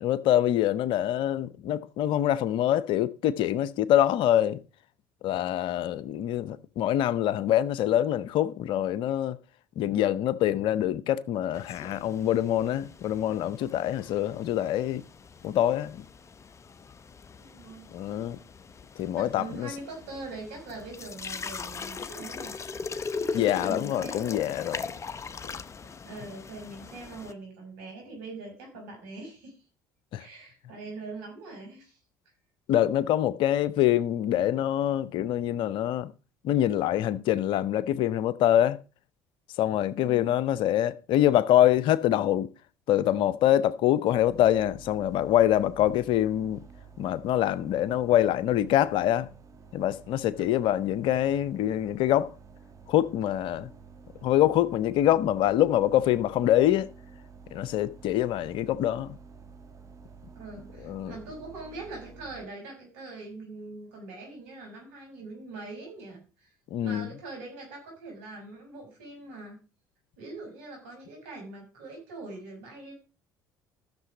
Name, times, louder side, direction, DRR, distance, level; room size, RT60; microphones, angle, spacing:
voice 1, 0.0-4.6 5.2-9.4 9.8-15.0 15.4-16.0 17.9-18.4 19.0-19.7 23.3-24.9 30.1-30.2 32.7-36.1 36.4-38.8 39.6-42.5 42.9-46.6 47.0-49.3 49.7-52.3 52.9-53.7 54.2-56.9 57.5-59.2 60.8-61.1 66.7-67.1, left 12 dB, 65° left, 0.8 m, -25 dB
sound 1, 11.5-27.3, left 5 dB, 30° left, 0.9 m, -40 dB
voice 2, 17.4-17.9 19.2-22.5 23.3-24.2 26.0-29.6 30.2-32.0 40.0-40.3 60.3-66.5 66.8-69.6 70.2-72.9, right 3 dB, 75° right, 6.3 m, -42 dB
sound 2, 44.1-62.5, right 5 dB, 35° right, 1.9 m, -50 dB
13.5 x 6.8 x 5.1 m
hypercardioid pair, 65°, 9 cm